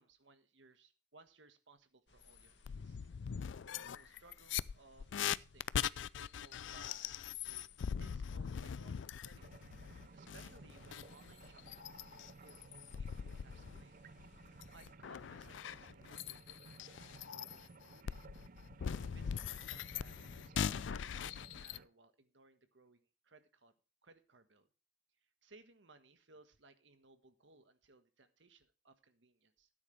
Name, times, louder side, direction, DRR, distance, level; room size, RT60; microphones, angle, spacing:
voice 1, 0.0-3.0 3.4-5.7 6.2-7.7 8.0-9.5 10.1-14.0 14.5-18.2 19.0-20.2 20.4-23.7 24.0-24.7 25.2-29.7, right 3 dB, 80° right, 9 dB, 1.5 m, -64 dB
sound 1, 2.1-15.0, left 1 dB, 70° left, 2.0 m, -66 dB
sound 2, 2.3-2.4 2.6-13.8 14.2-21.8, left 8 dB, 85° left, 0.4 m, -41 dB
sound 3, 9.3-21.9, right 3 dB, 50° right, 0.6 m, -58 dB
12.5 x 9.7 x 3.3 m, 0.34 s
head